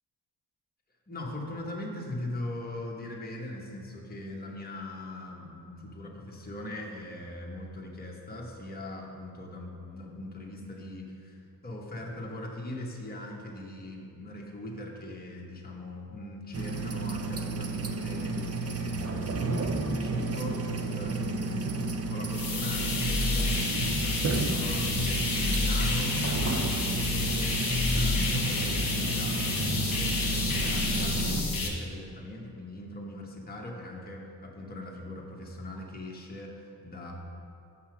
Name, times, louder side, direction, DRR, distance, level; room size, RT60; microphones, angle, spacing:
voice 1, 1.1-21.7 22.1-27.5 27.9-37.1, left 1 dB, 25° left, -2 dB, 1.2 m, -40 dB
sound 1, 16.5-31.4, right 3 dB, 40° right, 0.6 m, -32 dB
sound 2, 22.3-31.7, left 2 dB, 55° left, 1.4 m, -29 dB
6.7 x 5.6 x 6.1 m, 2.6 s
wide cardioid pair, 120°, 39 cm